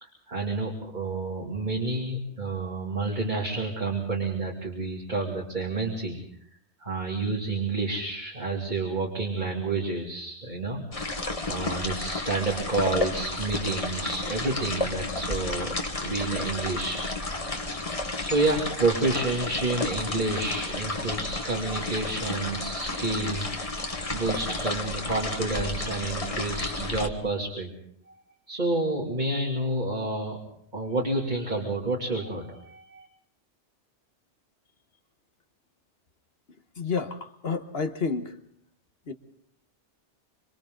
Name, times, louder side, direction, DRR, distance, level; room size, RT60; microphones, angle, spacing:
voice 1, 0.0-6.2 6.8-11.2 11.5-17.7 18.2-27.7 28.1-28.2 28.5-30.4 30.7-33.1, right 2 dB, 40° right, -2 dB, 2.7 m, -29 dB
sound 1, 10.9-27.1, left 2 dB, 30° left, 1.4 m, -32 dB
voice 2, 36.7-38.4 39.1-39.2, left 5 dB, 60° left, 6 dB, 1.4 m, -30 dB
26.5 x 25.5 x 3.9 m, 0.68 s
omnidirectional pair, 1.2 m